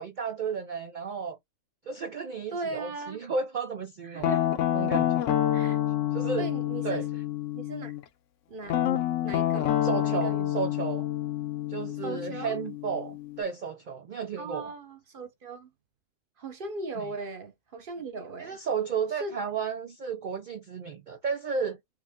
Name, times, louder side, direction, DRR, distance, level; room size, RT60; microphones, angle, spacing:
voice 1, 0.0-1.4 1.9-4.3 4.7-5.2 6.1-6.5 6.8-7.0 9.8-11.1 11.7-14.7 17.0-17.1 18.4-21.8, right 6 dB, 85° right, 0.4 m, -33 dB
voice 2, 2.5-3.2 4.0-4.6 5.5-5.8 6.4-7.1 7.5-8.0 8.5-8.8 9.2-10.5 12.0-12.6 14.4-15.7 16.4-18.6 19.2-19.4, right 3 dB, 45° right, 0.9 m, -38 dB
Guitar, 4.2-8.0 8.7-13.4, left 12 dB, 70° left, 0.9 m, -28 dB
4.7 x 2.2 x 3.6 m
omnidirectional pair, 1.4 m